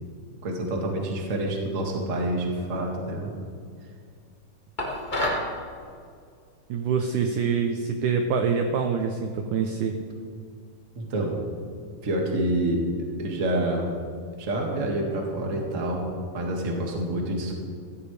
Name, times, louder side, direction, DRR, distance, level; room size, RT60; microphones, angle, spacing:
voice 1, 0.4-3.3 10.9-11.4 12.0-12.9 13.2-13.9 14.4-17.5, right 1 dB, 35° right, 0 dB, 1.3 m, -27 dB
sound 1, 4.8-5.5, left 1 dB, 80° left, 0.4 m, -27 dB
voice 2, 6.7-10.0, right 6 dB, 80° right, 5 dB, 1.9 m, -25 dB
15.5 x 14.5 x 3.3 m, 2.2 s
omnidirectional pair, 4.3 m